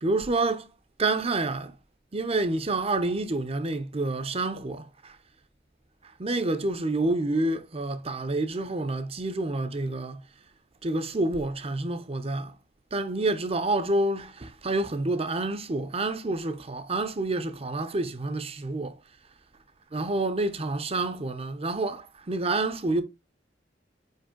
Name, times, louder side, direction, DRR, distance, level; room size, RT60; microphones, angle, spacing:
voice 1, 0.0-0.7 1.0-1.8 2.1-5.2 6.0-10.2 10.8-12.6 12.9-19.0 19.9-23.0, right 2 dB, 35° right, 0.7 m, -28 dB
5.3 x 4.8 x 3.8 m
head